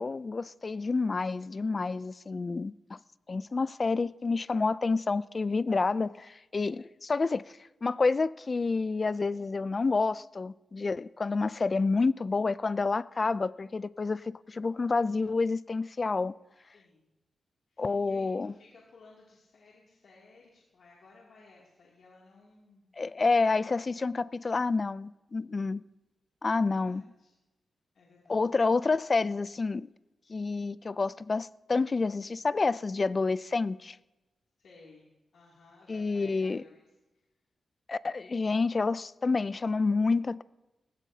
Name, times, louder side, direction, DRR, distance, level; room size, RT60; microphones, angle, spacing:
voice 1, 0.0-3.0 3.3-16.3 17.8-18.5 23.0-25.8 26.4-27.0 28.3-29.9 30.3-34.0 35.9-36.6 37.9-40.4, left 4 dB, 40° left, 0.4 m, -29 dB
voice 2, 16.7-17.1 17.7-22.9 26.6-27.3 27.9-28.5 34.6-36.9 37.1-37.2, left 3 dB, 75° left, 2.7 m, -58 dB
19.0 x 16.5 x 2.8 m
wide cardioid pair, 100°, 0 cm